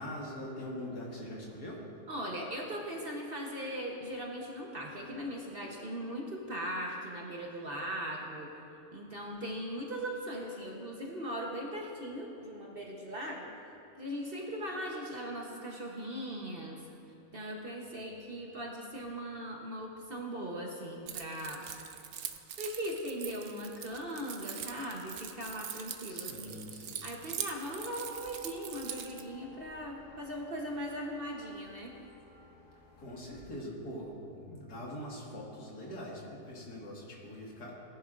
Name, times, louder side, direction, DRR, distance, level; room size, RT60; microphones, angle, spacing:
voice 1, 0.0-1.9 26.1-27.0 33.0-37.7, equal, 75° left, -3 dB, 2.4 m, -43 dB
voice 2, 2.1-8.5 8.9-13.5 14.0-16.8 17.3-21.6 22.6-26.7 27.0-31.9, equal, 40° right, -1 dB, 1.1 m, -39 dB
Keys jangling, 21.1-29.2, right 9 dB, 65° right, 0.9 m, -43 dB
sound 1, 27.7-33.6, left 3 dB, 35° left, 1.1 m, -57 dB
18.0 x 10.5 x 2.5 m, 2.9 s
omnidirectional pair, 1.7 m